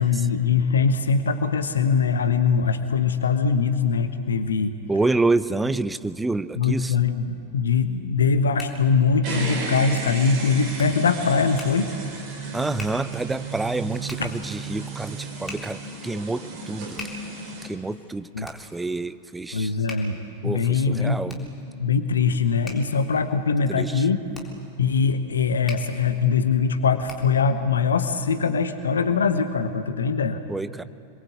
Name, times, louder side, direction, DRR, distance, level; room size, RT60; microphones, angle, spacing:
voice 1, 0.0-4.8 6.6-11.9 14.2-14.3 18.3-18.5 19.5-21.4 21.8-24.2 24.8-30.4, left 5 dB, 70° left, 10 dB, 1.2 m, -22 dB
voice 2, 4.9-7.0 12.5-17.1 17.6-19.8 20.4-21.4 23.7-24.0 30.5-30.8, right 3 dB, 10° right, 14 dB, 0.7 m, -28 dB
Hands, 8.2-27.5, left 2 dB, 15° left, 3.7 m, -45 dB
sound 1, 9.2-17.7, right 4 dB, 40° right, 5.4 m, -33 dB
27.0 x 22.0 x 8.2 m, 2.5 s
figure-of-eight pair, 90°, 0 cm